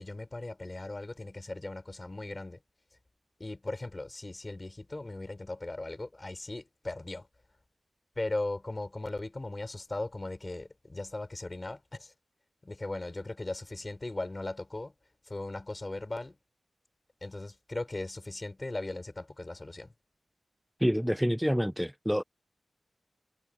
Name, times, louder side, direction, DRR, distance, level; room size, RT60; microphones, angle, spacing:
voice 1, 0.0-2.6 3.4-7.3 8.2-12.1 12.6-14.9 15.3-16.4 17.2-19.9, left 2 dB, 35° left, 4.0 m, -38 dB
voice 2, 20.8-22.2, equal, ahead, 0.4 m, -27 dB
cardioid pair, 55°, 0 cm